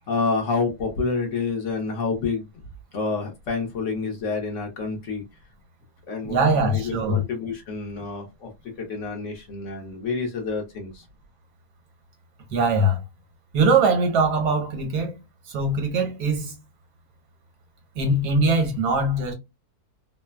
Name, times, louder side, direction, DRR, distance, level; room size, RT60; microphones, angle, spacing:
voice 1, 0.1-2.5 2.9-5.2 6.1-8.5 8.8-11.0, left 4 dB, 60° left, 0.9 m, -28 dB
voice 2, 6.2-7.2 12.5-13.0 13.5-15.2 15.5-16.5 18.0-19.3, right 2 dB, 85° right, 1.5 m, -21 dB
3.2 x 2.0 x 2.2 m
omnidirectional pair, 1.7 m